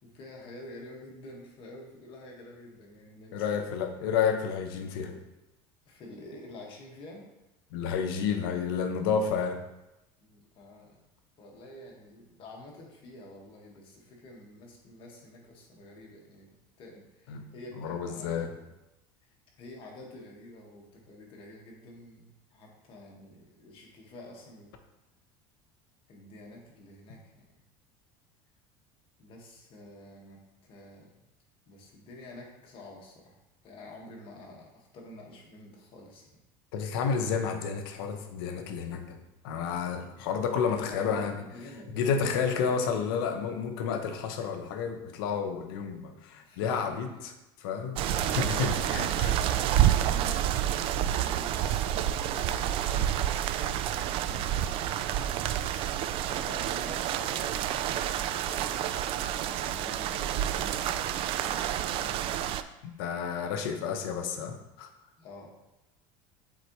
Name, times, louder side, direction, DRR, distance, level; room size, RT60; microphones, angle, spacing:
voice 1, 0.0-3.7 5.8-7.3 10.2-11.0 11.4-18.7 19.2-24.8 26.1-27.6 29.2-31.1 31.7-33.3 33.6-36.3 40.8-42.8 46.4-47.0 48.0-55.6 56.1-62.3 65.2-65.5, left 1 dB, 50° left, -1 dB, 1.7 m, -48 dB
voice 2, 3.3-5.2 7.7-9.6 17.3-17.4 17.8-18.5 36.7-41.4 41.9-47.1 47.6-48.1 48.4-49.4 63.0-64.9, left 6 dB, 85° left, 6 dB, 0.8 m, -30 dB
sound 1, 48.0-62.6, right 11 dB, 50° right, 0.4 m, -29 dB
7.7 x 4.0 x 3.1 m, 0.95 s
supercardioid pair, 120°, 12 cm